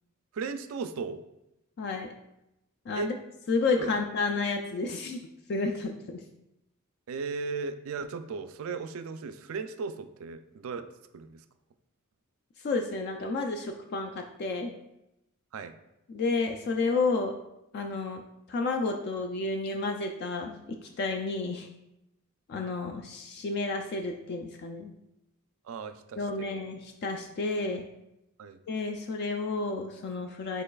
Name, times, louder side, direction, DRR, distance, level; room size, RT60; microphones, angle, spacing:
voice 1, 0.3-1.2 2.9-3.1 3.8-3.9 7.1-10.9 11.1-11.4 15.5-15.8 25.6-26.6 28.4-28.6, right 4 dB, 65° right, 10 dB, 0.3 m, -36 dB
voice 2, 1.8-2.1 2.9-3.1 3.5-5.2 5.5-6.2 12.6-14.7 16.1-17.3 17.7-18.2 18.5-21.7 22.5-24.9 26.2-27.8 28.7-30.6, left 3 dB, 50° left, 4 dB, 0.3 m, -31 dB
5.3 x 3.9 x 2.3 m, 0.87 s
head